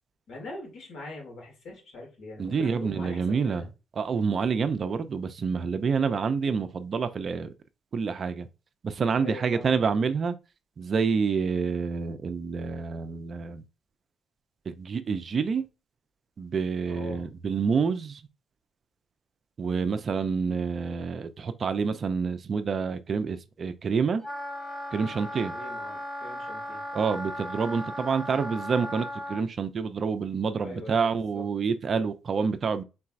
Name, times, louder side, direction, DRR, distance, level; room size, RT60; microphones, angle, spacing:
voice 1, 0.3-3.7 9.2-9.7 16.9-17.3 25.5-26.8 30.6-31.4, left 2 dB, 70° left, 2.5 m, -42 dB
voice 2, 2.4-3.6 4.0-7.5 7.9-8.5 8.8-10.4 10.8-13.6 14.7-15.6 16.4-18.2 19.6-24.2 24.9-25.5 26.9-32.8, right 5 dB, 50° right, 0.5 m, -28 dB
Wind instrument woodwind instrument, 24.2-29.4, left 1 dB, 10° left, 1.1 m, -37 dB
4.3 x 3.9 x 2.5 m
cardioid pair, 90°, 0 cm